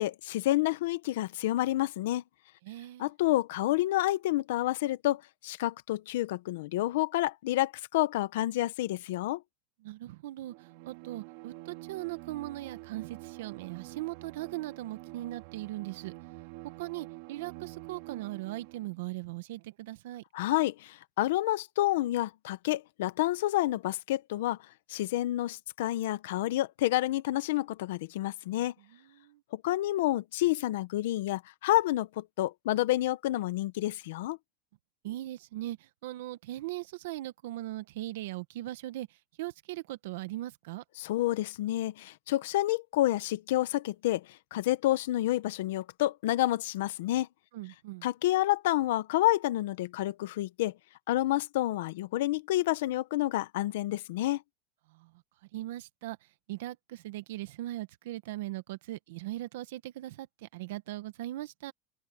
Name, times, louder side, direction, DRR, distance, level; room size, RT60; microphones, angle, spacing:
voice 1, 0.0-2.2 3.0-9.4 20.3-24.6 24.9-28.7 29.5-34.4 41.0-47.3 48.0-50.7 51.1-54.4, left 15 dB, 75° left, 1.2 m, -29 dB
voice 2, 2.6-3.1 9.8-16.1 16.8-20.2 28.9-29.4 35.0-40.8 47.5-48.1 54.9-55.1 55.5-61.7, right 16 dB, 75° right, 1.3 m, -39 dB
Bowed string instrument, 10.5-19.0, right 25 dB, 60° right, 4.6 m, -47 dB
open air
supercardioid pair, 155°, 0 cm